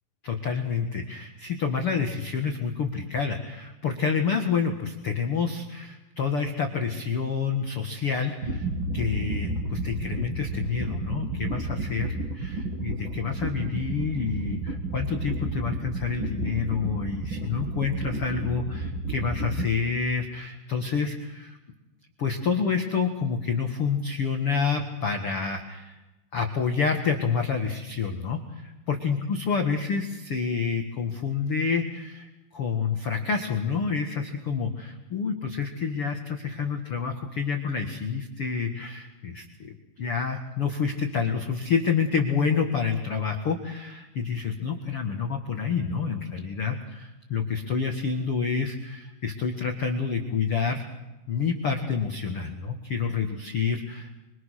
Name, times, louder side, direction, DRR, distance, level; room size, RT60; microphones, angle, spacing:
voice 1, 0.2-8.7 8.9-21.6 22.2-25.9 26.3-50.8 51.3-54.2, left 5 dB, 75° left, 3 dB, 1.3 m, -28 dB
sound 1, 8.4-19.7, right 2 dB, 55° right, 1.3 m, -32 dB
25.0 x 24.5 x 6.5 m, 1.0 s
omnidirectional pair, 5.5 m